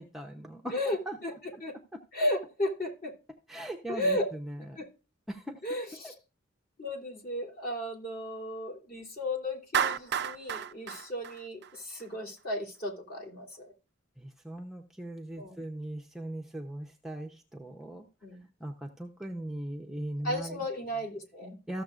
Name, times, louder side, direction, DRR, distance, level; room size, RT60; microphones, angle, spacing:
voice 1, 0.0-0.8 1.1-1.2 3.5-4.2 5.3-5.6 14.2-18.0 18.6-20.6 21.7-21.8, right 1 dB, ahead, 1 dB, 0.8 m, -39 dB
voice 2, 0.7-1.8 2.1-3.1 3.9-4.3 4.7-4.9 5.6-6.1 6.8-13.7 15.4-15.6 18.2-18.5 20.2-21.6, left 1 dB, 45° left, 0 dB, 2.8 m, -34 dB
Clapping, 9.7-12.0, right 8 dB, 55° right, 0.5 m, -31 dB
14.5 x 7.0 x 2.5 m, 0.32 s
head